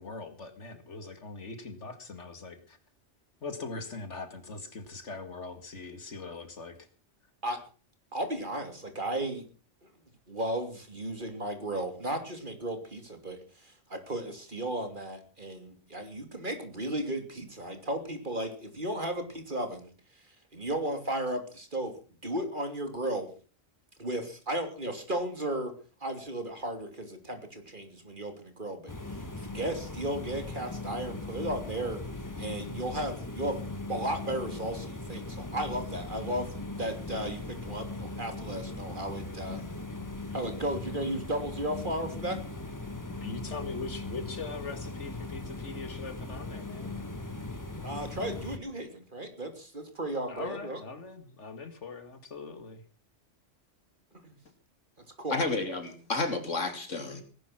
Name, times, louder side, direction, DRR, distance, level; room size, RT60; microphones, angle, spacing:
voice 1, 0.0-2.8 3.4-6.8 43.2-47.0 50.3-52.8, left 4 dB, 70° left, 10 dB, 2.4 m, -41 dB
voice 2, 8.1-9.4 10.3-19.9 20.5-21.9 22.2-23.3 24.0-25.7 26.0-32.0 32.4-33.6 33.9-39.7 40.3-42.4 47.8-50.8 54.2-54.3 55.2-55.4, right 1 dB, 40° right, 6 dB, 3.3 m, -35 dB
sound 1, 28.9-48.6, left 2 dB, 15° left, 1.5 m, -39 dB
voice 3, 55.3-57.2, left 3 dB, 90° left, 7 dB, 3.2 m, -31 dB
19.0 x 11.5 x 6.0 m, 0.39 s
omnidirectional pair, 1.3 m